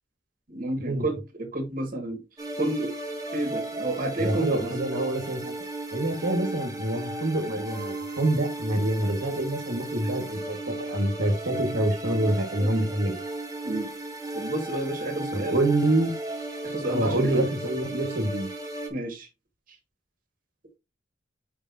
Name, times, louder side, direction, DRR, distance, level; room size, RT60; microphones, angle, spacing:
voice 1, 0.5-2.2 2.6-2.9 3.3-4.7 12.6-12.7 13.7-13.9 14.3-15.6 16.6-17.4 18.9-19.3, right 1 dB, 50° right, 2.0 m, -30 dB
sound 1, 2.4-18.9, right 2 dB, 20° right, 1.1 m, -35 dB
voice 2, 4.2-5.5 5.9-13.2 15.3-16.1 16.9-18.5, right 1 dB, 85° right, 1.8 m, -26 dB
6.6 x 5.3 x 2.8 m
head